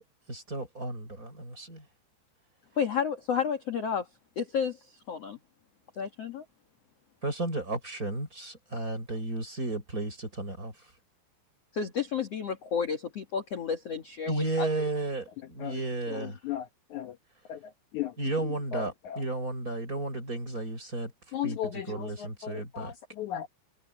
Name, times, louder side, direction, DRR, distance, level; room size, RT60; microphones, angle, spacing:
voice 1, 0.3-1.8 7.2-10.7 14.3-16.4 18.2-21.1 21.4-22.9, right 2 dB, 20° right, 6.5 m, -33 dB
voice 2, 2.8-4.1 4.4-5.4 6.0-6.4 11.7-14.9, left 6 dB, 50° left, 2.1 m, -31 dB
voice 3, 16.1-17.1 17.5-17.6 17.9-18.1 18.7-19.2 21.3-23.5, left 11 dB, 80° left, 1.7 m, -36 dB
omnidirectional pair, 5.1 m